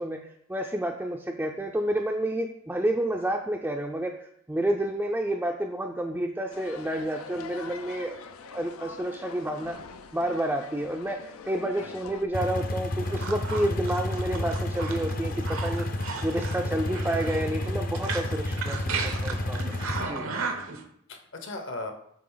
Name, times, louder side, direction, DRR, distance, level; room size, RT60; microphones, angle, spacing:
voice 1, 0.0-8.2 8.5-9.8 10.1-15.9 16.2-19.7 20.0-20.2, right 1 dB, 10° right, 0 dB, 0.4 m, -30 dB
sound 1, 6.5-12.3, left 5 dB, 90° left, 0.5 m, -44 dB
sound 2, 12.3-20.0, left 1 dB, 45° left, 0.6 m, -31 dB
sound 3, 13.0-20.8, right 4 dB, 80° right, 0.8 m, -35 dB
voice 2, 20.2-21.9, left 2 dB, 60° left, 5 dB, 1.0 m, -40 dB
8.5 x 3.4 x 3.9 m, 0.70 s
head